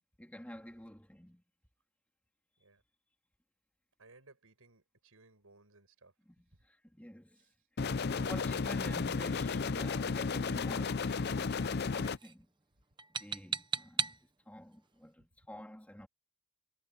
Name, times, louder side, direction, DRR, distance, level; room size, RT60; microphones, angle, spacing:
voice 1, 0.2-1.4 6.2-7.4 8.1-12.5 13.2-14.1 14.4-16.1, equal, 5° left, 3.1 m, -50 dB
voice 2, 4.0-6.1 6.5-6.6 7.3-7.7, right 3 dB, 80° right, 5.4 m, -62 dB
sound 1, 7.8-12.2, left 4 dB, 50° left, 0.5 m, -33 dB
sound 2, 9.8-10.1 10.9-11.2 11.5-11.8 12.0-12.4 13.0-14.2, right 6 dB, 20° right, 0.9 m, -38 dB
head